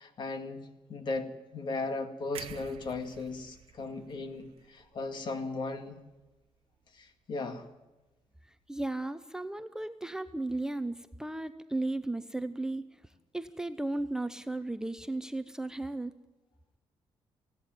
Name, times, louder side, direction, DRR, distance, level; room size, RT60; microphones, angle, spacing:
voice 1, 0.0-6.0 6.9-7.7, left 3 dB, 50° left, 7 dB, 2.2 m, -37 dB
sound 1, 2.3-6.4 6.7-6.9, right 11 dB, 80° right, 1.0 m, -50 dB
voice 2, 8.7-13.0 13.3-16.2, right 2 dB, 5° right, 10 dB, 0.7 m, -35 dB
20.0 x 16.0 x 9.1 m, 1.1 s
cardioid pair, 140°, 10 cm